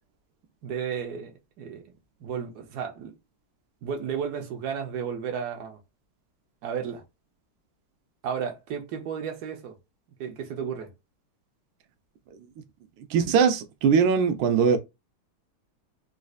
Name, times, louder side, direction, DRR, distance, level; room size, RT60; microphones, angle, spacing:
voice 1, 0.6-1.9 2.2-3.1 3.8-5.8 6.6-7.0 8.2-9.8 10.2-10.9, right 7 dB, 60° right, 1.1 m, -33 dB
voice 2, 13.1-14.8, right 6 dB, 85° right, 1.4 m, -21 dB
4.1 x 2.5 x 2.4 m
omnidirectional pair, 2.3 m